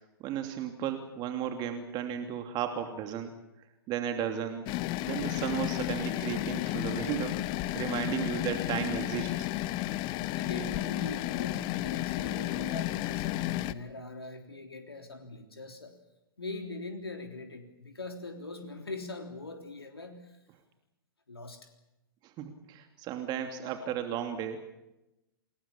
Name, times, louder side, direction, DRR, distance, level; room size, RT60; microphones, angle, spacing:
voice 1, 0.2-3.3 3.9-4.7 5.0-7.4 7.7-9.5 22.2-24.6, right 9 dB, 35° right, 6 dB, 2.9 m, -34 dB
sound 1, 4.7-13.7, left 16 dB, 35° left, 1.0 m, -32 dB
voice 2, 7.7-8.2 10.4-15.9 16.4-20.4 21.3-21.7, left 3 dB, 85° left, 5 dB, 3.4 m, -42 dB
28.0 x 20.5 x 7.3 m, 0.92 s
figure-of-eight pair, 110°, 13 cm